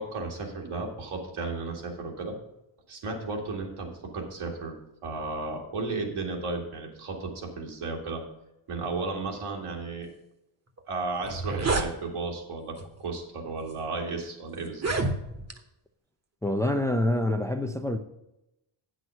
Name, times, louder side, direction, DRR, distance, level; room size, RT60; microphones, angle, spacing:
voice 1, 0.0-2.4 2.9-4.8 5.0-8.2 8.7-10.1 10.9-14.9, right 3 dB, 80° right, 2.3 m, -34 dB
sound 1, 10.8-10.9 11.2-11.9 12.8-13.0 13.7-13.8 14.7-15.6, right 3 dB, 30° right, 1.1 m, -28 dB
voice 2, 16.4-18.0, left 1 dB, 5° left, 0.5 m, -26 dB
8.9 x 6.4 x 5.6 m
cardioid pair, 100°, 50 cm